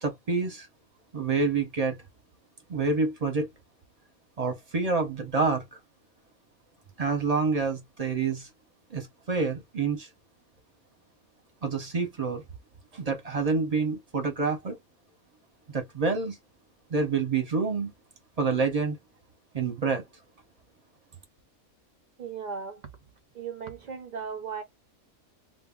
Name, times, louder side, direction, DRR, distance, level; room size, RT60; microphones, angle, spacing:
voice 1, 0.0-0.7 1.1-2.0 2.7-3.5 4.4-5.6 7.0-8.5 8.9-10.1 11.6-12.4 12.9-14.8 15.7-16.4 16.9-17.9 18.4-19.0 19.5-20.0, right 4 dB, 40° right, 0.6 m, -27 dB
voice 2, 22.2-22.8 23.3-24.6, right 6 dB, 85° right, 0.4 m, -36 dB
2.6 x 2.0 x 3.6 m
omnidirectional pair, 1.5 m